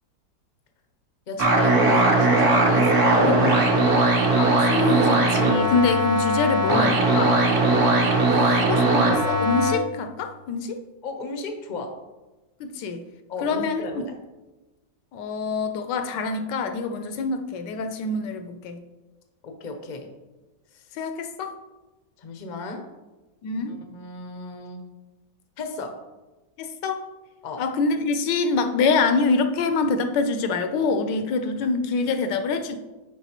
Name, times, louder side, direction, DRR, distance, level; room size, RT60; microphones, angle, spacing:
voice 1, 1.3-3.7 8.4-8.6 11.0-11.9 13.3-14.1 19.4-20.1 22.2-22.8 23.7-24.8 25.6-25.9 27.4-27.6, left 3 dB, 50° left, 4 dB, 0.5 m, -34 dB
sound 1, 1.4-9.7, right 2 dB, 50° right, 1.2 m, -19 dB
voice 2, 4.4-8.0 8.6-10.8 12.6-13.0 13.4-14.0 15.1-18.8 20.9-21.5 23.4-23.8 26.6-27.0 27.6-32.8, left 4 dB, 75° left, 8 dB, 1.2 m, -25 dB
9.9 x 4.8 x 2.9 m, 1.1 s
omnidirectional pair, 2.0 m